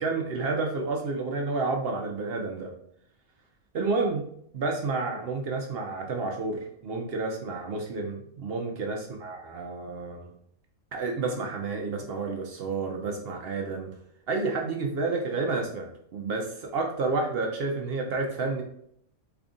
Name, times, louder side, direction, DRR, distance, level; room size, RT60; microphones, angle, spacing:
voice 1, 0.0-2.7 3.7-4.2 4.5-10.3 10.9-13.9 14.3-18.6, right 3 dB, 60° right, 1 dB, 0.6 m, -30 dB
3.4 x 2.4 x 3.7 m, 0.69 s
omnidirectional pair, 1.4 m